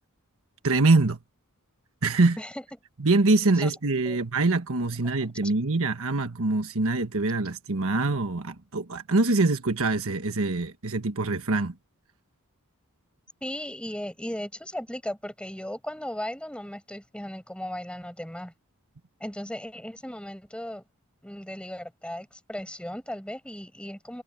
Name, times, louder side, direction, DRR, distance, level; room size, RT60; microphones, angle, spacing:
voice 1, 0.6-1.2 2.0-2.4 3.0-11.7, right 3 dB, 65° right, 1.4 m, -24 dB
voice 2, 13.4-18.5 19.2-20.8 21.2-24.2, left 1 dB, 5° left, 7.6 m, -36 dB
head